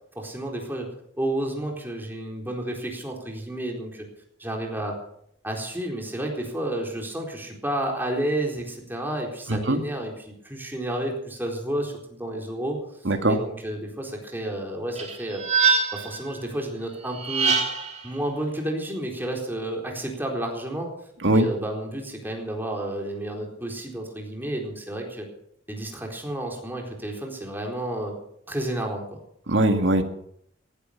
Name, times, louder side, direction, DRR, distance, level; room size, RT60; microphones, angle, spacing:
voice 1, 0.2-0.9 1.2-4.0 4.4-5.0 5.4-12.8 13.3-15.4 15.9-17.5 18.0-20.9 21.3-25.3 25.7-28.2 28.5-29.2, right 1 dB, 10° right, 1 dB, 4.1 m, -31 dB
voice 2, 13.1-13.4 21.2-21.5 29.5-30.0, right 1 dB, 75° right, 6 dB, 2.1 m, -20 dB
sound 1, 15.0-16.2 17.1-18.0, right 5 dB, 40° right, 3.1 m, -23 dB
19.0 x 12.0 x 5.9 m, 0.70 s
head